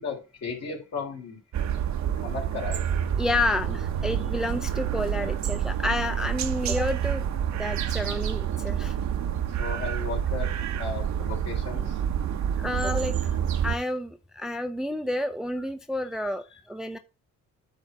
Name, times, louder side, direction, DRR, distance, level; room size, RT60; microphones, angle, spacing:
voice 1, 0.0-1.4 2.2-2.8 4.6-4.7 5.2-5.4 9.6-10.5 10.8-12.0 13.2-13.4 15.6-15.7 16.2-16.4, left 5 dB, 60° left, -1 dB, 3.5 m, -35 dB
sound 1, 1.5-13.8, right 9 dB, 65° right, 0.9 m, -28 dB
voice 2, 3.2-7.2 7.6-8.9 12.6-13.3 13.6-17.0, left 1 dB, ahead, 8 dB, 0.5 m, -30 dB
8.8 x 3.2 x 6.1 m, 0.31 s
cardioid pair, 90°, 30 cm